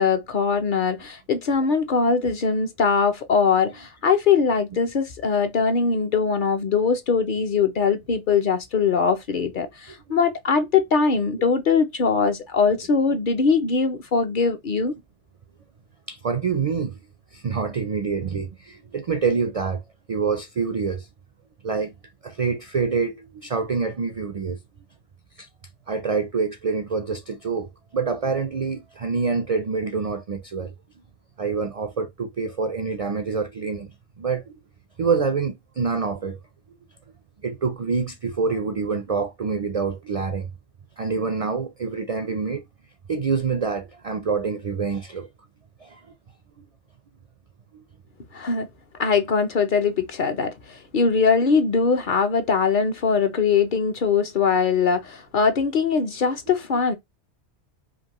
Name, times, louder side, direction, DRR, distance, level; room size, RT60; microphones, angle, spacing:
voice 1, 0.0-14.9 48.3-48.7 49.0-56.9, left 5 dB, 55° left, 0.7 m, -21 dB
voice 2, 16.1-17.0 17.3-19.8 20.1-21.1 21.6-21.9 22.2-24.6 25.4-25.5 25.9-30.7 31.4-34.6 35.0-36.4 37.4-40.5 41.0-42.6 43.1-45.3 45.8-46.0 47.7-47.8, right 5 dB, 55° right, 0.4 m, -26 dB
5.1 x 2.7 x 2.9 m
omnidirectional pair, 1.2 m